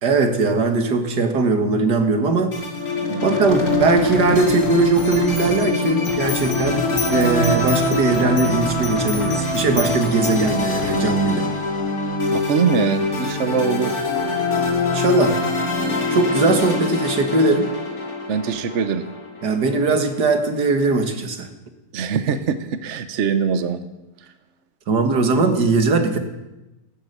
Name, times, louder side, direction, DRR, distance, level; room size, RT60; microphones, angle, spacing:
voice 1, 0.0-2.5 3.2-6.8 7.1-11.5 14.9-15.4 16.1-17.7 19.4-21.5 24.9-26.2, right 3 dB, 75° right, 6 dB, 2.2 m, -19 dB
sound 1, 2.5-19.9, left 2 dB, 60° left, 3.0 m, -24 dB
sound 2, 3.5-5.6 6.1-11.0, left 2 dB, ahead, 2.8 m, -33 dB
sound 3, 5.0-10.6, left 4 dB, 80° left, 2.1 m, -34 dB
voice 2, 12.3-14.0 18.3-19.0 21.9-23.8, right 6 dB, 50° right, 10 dB, 1.1 m, -23 dB
14.5 x 14.5 x 6.7 m, 1.0 s
omnidirectional pair, 1.8 m